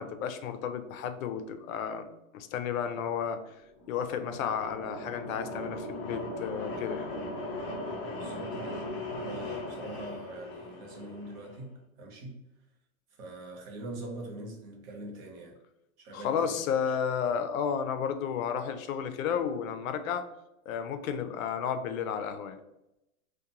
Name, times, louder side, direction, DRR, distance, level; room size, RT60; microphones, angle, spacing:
voice 1, 0.0-2.1 2.3-3.4 3.9-7.1 16.1-20.3 20.7-22.6, left 7 dB, 85° left, 9 dB, 0.5 m, -32 dB
sound 1, 3.7-11.6, left 1 dB, 25° left, 0.4 m, -38 dB
voice 2, 8.1-8.8 9.2-12.4 13.1-15.6 16.0-17.0, right 1 dB, 45° right, 0 dB, 0.8 m, -43 dB
2.4 x 2.2 x 2.8 m, 0.89 s
supercardioid pair, 145°, 40 cm